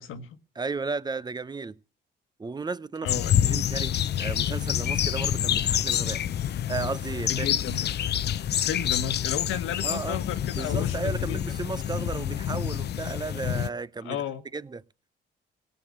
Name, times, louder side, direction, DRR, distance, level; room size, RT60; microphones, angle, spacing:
voice 1, 0.0-0.4 3.0-3.3 7.3-7.9 8.6-11.4 14.0-14.4, left 8 dB, 85° left, 1.5 m, -33 dB
voice 2, 0.5-1.8 2.4-3.1 3.4-6.2 6.7-7.5 9.8-10.2 10.5-14.2 14.5-14.8, right 4 dB, 20° right, 0.6 m, -34 dB
sound 1, 3.1-13.7, left 10 dB, 55° left, 0.7 m, -27 dB
17.5 x 6.9 x 8.7 m
cardioid pair, 90°, 20 cm